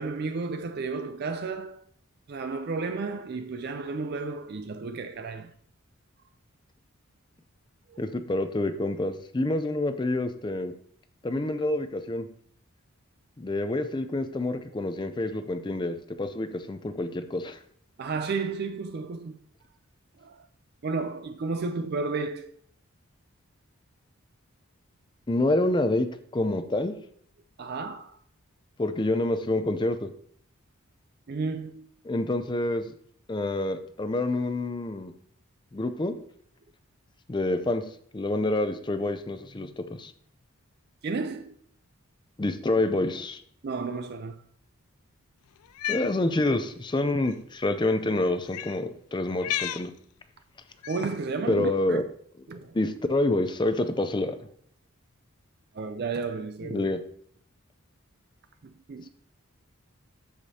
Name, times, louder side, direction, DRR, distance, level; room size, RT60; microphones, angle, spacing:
voice 1, 0.0-1.8 2.3-5.5 7.9-8.0 18.0-19.4 20.2-20.4 20.8-22.5 27.6-28.2 31.3-31.9 41.0-41.5 43.6-44.4 50.9-52.0 52.5-52.8 55.7-56.9 58.6-59.1, right 4 dB, 45° right, 0.4 m, -32 dB
voice 2, 8.0-10.7 11.2-12.3 13.4-17.6 25.3-26.1 26.3-26.9 28.8-30.1 32.0-32.9 33.3-35.1 35.7-36.1 37.3-37.8 38.1-40.1 42.4-43.4 45.9-49.9 51.5-52.0 52.7-54.4 56.7-57.0, left 2 dB, 20° left, 0.4 m, -27 dB
Cat, 45.6-46.1 47.2-47.3 48.5-48.8 49.4-49.9 50.8-51.2, left 12 dB, 90° left, 0.4 m, -32 dB
13.5 x 5.0 x 2.8 m
head